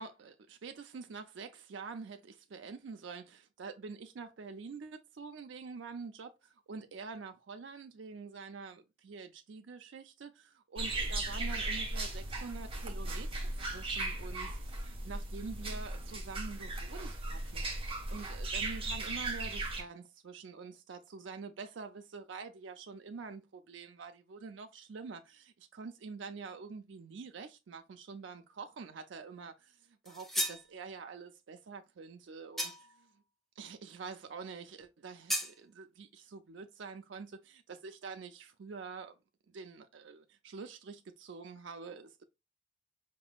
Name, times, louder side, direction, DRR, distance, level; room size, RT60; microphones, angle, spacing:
voice 1, 0.0-13.3 13.6-17.6 18.1-33.1 33.6-39.2 39.5-42.2, right 4 dB, 65° right, 0.4 m, -46 dB
sound 1, 10.8-19.8, right 2 dB, 25° right, 1.0 m, -37 dB
sound 2, 30.0-30.7 32.6-33.0 35.3-35.6, equal, ahead, 0.4 m, -34 dB
4.8 x 3.7 x 2.3 m
head